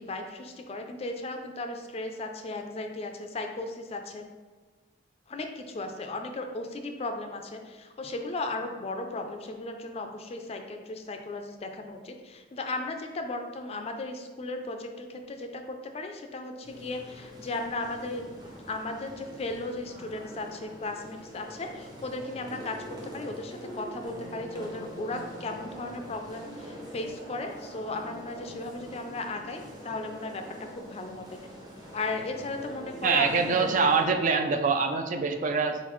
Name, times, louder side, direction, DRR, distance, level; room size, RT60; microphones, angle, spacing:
voice 1, 0.0-4.2 5.3-30.4 30.7-31.4 31.9-33.7, left 2 dB, 35° left, 5 dB, 0.4 m, -36 dB
sound 1, 16.6-34.0, equal, 20° right, 0.8 m, -44 dB
voice 2, 33.0-35.8, right 4 dB, 45° right, 7 dB, 0.3 m, -24 dB
4.1 x 3.9 x 3.0 m, 1.4 s
head